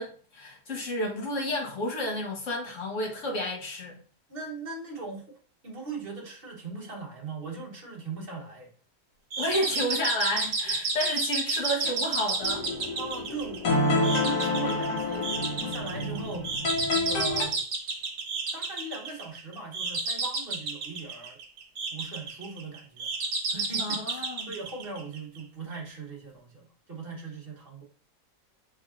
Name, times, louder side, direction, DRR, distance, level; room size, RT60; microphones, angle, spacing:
voice 1, 0.0-4.0 9.4-12.7 23.8-24.5, left 1 dB, 50° left, 1.5 m, -31 dB
voice 2, 4.3-5.4 5.6-8.7 13.0-17.5 18.5-21.4 21.9-27.8, right 3 dB, 40° right, 1.0 m, -39 dB
sound 1, 9.3-25.4, right 3 dB, 80° right, 1.4 m, -32 dB
sound 2, 12.4-17.4, left 2 dB, 80° left, 1.8 m, -28 dB
5.3 x 3.6 x 2.4 m
omnidirectional pair, 1.7 m